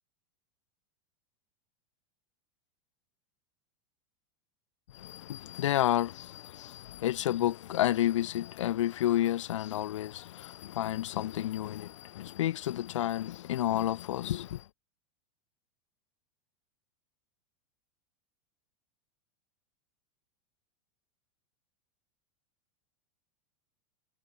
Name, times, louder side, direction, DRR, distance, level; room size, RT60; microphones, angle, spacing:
voice 1, 4.9-14.6, left 13 dB, 85° left, 1.6 m, -31 dB
supercardioid pair, 140°, 15 cm